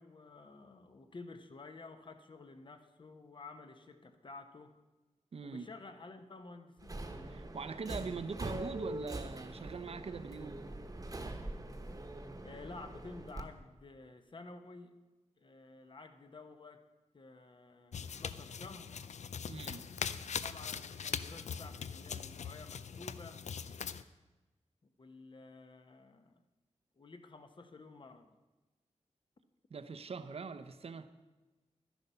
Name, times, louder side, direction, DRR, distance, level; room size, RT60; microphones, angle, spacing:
voice 1, 0.0-4.7 5.4-7.1 12.4-15.0 15.4-16.8 17.1-18.9 20.1-23.4 24.8-26.4 27.0-28.3, left 3 dB, 45° left, 1.0 m, -52 dB
voice 2, 5.3-5.7 7.3-10.6 19.5-19.9 29.7-31.1, right 5 dB, 55° right, 0.7 m, -42 dB
Subway metro underground, 6.8-13.4, right 1 dB, 30° right, 1.1 m, -43 dB
Footsteps Solid Wood Female Barefoot Running, 17.9-24.0, left 6 dB, 75° left, 0.5 m, -41 dB
12.0 x 10.5 x 5.6 m
wide cardioid pair, 115°, 12 cm